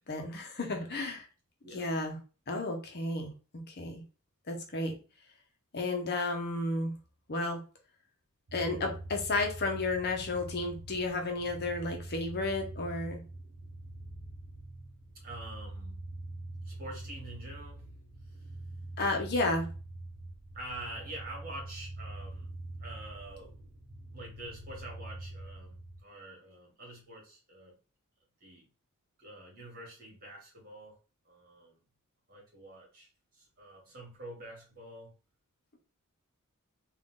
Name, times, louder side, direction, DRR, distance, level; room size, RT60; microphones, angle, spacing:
voice 1, 0.1-1.3 1.7-2.2 2.5-3.3 3.7-4.0 4.5-5.0 5.7-7.0 7.3-7.6 8.5-13.2 19.0-19.7, left 2 dB, 45° left, 3 dB, 0.9 m, -32 dB
sound 1, 8.5-26.0, right 1 dB, 70° right, 1.0 m, -44 dB
voice 2, 15.1-16.0 16.6-17.9 18.3-18.5 20.5-22.5 22.8-23.6 24.1-27.8 28.4-28.7 29.2-31.0 31.2-31.7 32.3-35.1, right 1 dB, 40° right, -1 dB, 2.0 m, -47 dB
3.9 x 2.6 x 3.6 m, 0.34 s
head